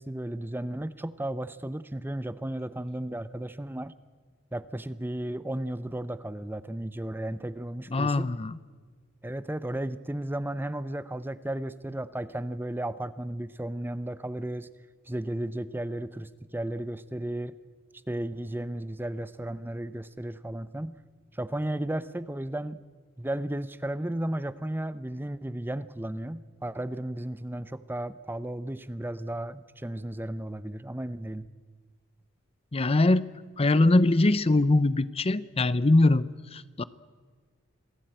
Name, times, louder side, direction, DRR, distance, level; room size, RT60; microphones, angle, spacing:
voice 1, 0.0-3.9 4.5-8.3 9.2-14.7 15.0-17.5 18.1-21.0 21.3-22.8 23.2-31.5, right 1 dB, 10° right, 15 dB, 0.7 m, -34 dB
voice 2, 7.9-8.6 32.7-33.3 33.6-36.2 36.5-36.8, left 2 dB, 30° left, 16 dB, 0.6 m, -22 dB
27.0 x 17.5 x 9.0 m, 1.6 s
head